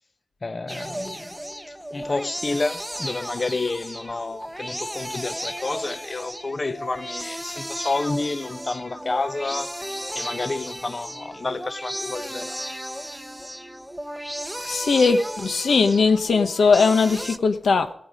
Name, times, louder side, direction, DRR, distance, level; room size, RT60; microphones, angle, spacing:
voice 1, 0.4-1.3 1.9-9.7 10.1-12.5, left 3 dB, 40° left, 0.6 m, -29 dB
sound 1, 0.7-17.4, equal, 5° right, 0.7 m, -34 dB
voice 2, 14.7-17.9, left 4 dB, 90° left, 1.1 m, -19 dB
18.5 x 8.8 x 5.0 m
wide cardioid pair, 115°, 0 cm